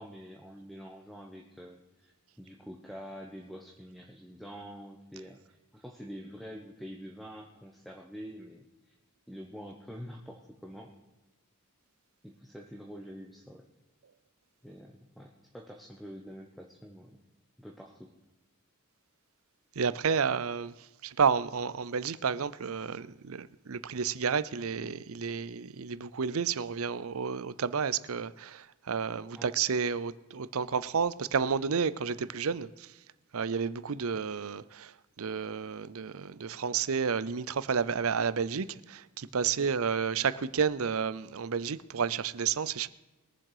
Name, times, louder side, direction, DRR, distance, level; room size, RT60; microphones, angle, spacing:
voice 1, 0.0-8.9 9.3-10.9 12.2-13.7 14.6-17.2 17.6-18.1 29.4-29.5 39.6-39.7, equal, ahead, 1.0 m, -46 dB
voice 2, 19.8-32.9 33.3-42.9, right 6 dB, 70° right, 0.6 m, -31 dB
21.5 x 7.5 x 4.9 m
head